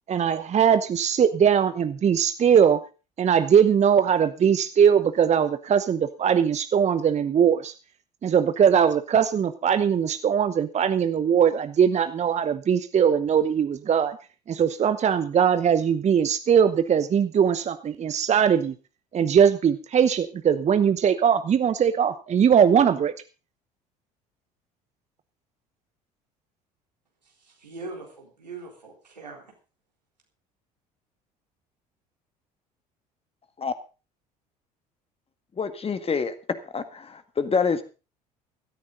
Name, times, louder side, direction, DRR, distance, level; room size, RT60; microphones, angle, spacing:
voice 1, 0.1-2.8 3.2-7.7 8.2-14.2 14.5-18.7 19.1-23.1, right 8 dB, 35° right, 12 dB, 0.9 m, -20 dB
voice 2, 27.2-29.5, right 3 dB, 90° right, 0 dB, 4.0 m, -41 dB
voice 3, 35.6-36.3 36.7-37.8, left 5 dB, 30° left, 10 dB, 1.8 m, -26 dB
16.5 x 13.5 x 3.9 m, 0.33 s
figure-of-eight pair, 60°, 21 cm